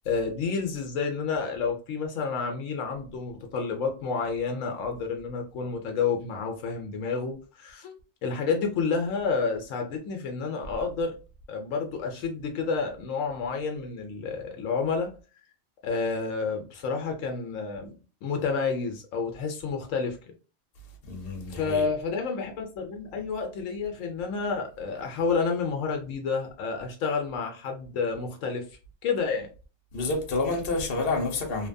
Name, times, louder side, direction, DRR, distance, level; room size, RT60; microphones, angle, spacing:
voice 1, 0.1-7.9 8.2-11.1 11.5-15.1 15.8-17.9 18.2-20.2 21.5-28.7 29.0-29.5, left 5 dB, 75° left, 0.9 m, -30 dB
voice 2, 20.8-21.9 29.9-31.7, left 3 dB, 50° left, 0.8 m, -29 dB
2.8 x 2.2 x 2.5 m
omnidirectional pair, 1.4 m